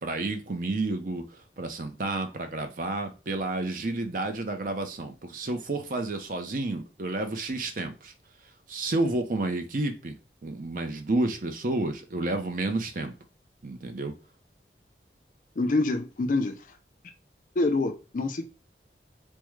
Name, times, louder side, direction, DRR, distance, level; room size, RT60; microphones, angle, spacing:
voice 1, 0.0-8.1 8.7-10.2 10.4-13.1 13.6-14.1, right 2 dB, 50° right, 0.5 m, -30 dB
voice 2, 15.6-16.6 17.6-18.4, left 2 dB, 45° left, 0.4 m, -26 dB
3.5 x 2.1 x 3.0 m
head